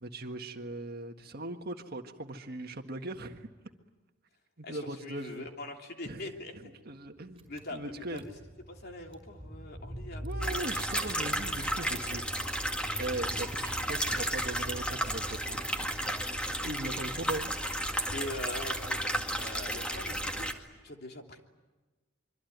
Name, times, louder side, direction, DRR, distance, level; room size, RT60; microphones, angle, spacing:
voice 1, 0.0-3.5 4.6-5.5 6.0-8.2 10.2-12.4 13.0-17.5, right 1 dB, 50° right, 5 dB, 1.7 m, -40 dB
voice 2, 4.6-6.7 7.5-8.3 8.7-10.5 18.1-21.4, left 1 dB, 50° left, 2 dB, 3.1 m, -43 dB
Car / Engine, 7.4-15.7, equal, 25° right, 5.8 m, -44 dB
sound 1, 10.4-20.5, equal, 5° left, 2.0 m, -33 dB
26.0 x 24.5 x 9.4 m, 1.2 s
head